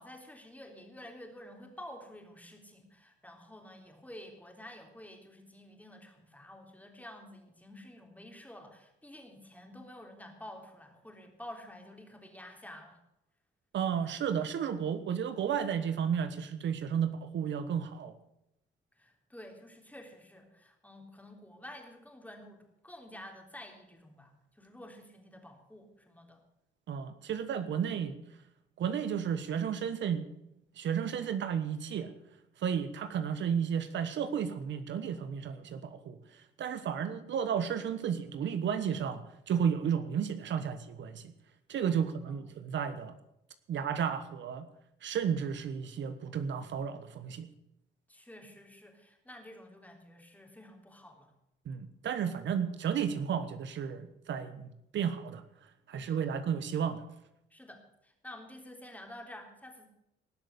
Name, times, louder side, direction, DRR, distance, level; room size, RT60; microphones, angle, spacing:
voice 1, 0.0-13.0 19.0-22.6 22.8-26.4 42.0-42.6 48.1-51.3 55.9-56.3 57.5-59.9, left 1 dB, 10° left, 3 dB, 3.5 m, -50 dB
voice 2, 13.7-18.1 26.9-28.2 28.8-30.3 30.8-32.1 32.6-41.3 41.7-43.2 43.7-44.7 45.0-47.5 51.7-55.4 55.9-57.0, right 7 dB, 65° right, 11 dB, 1.2 m, -33 dB
19.0 x 6.6 x 8.3 m, 0.84 s
cardioid pair, 90°, 20 cm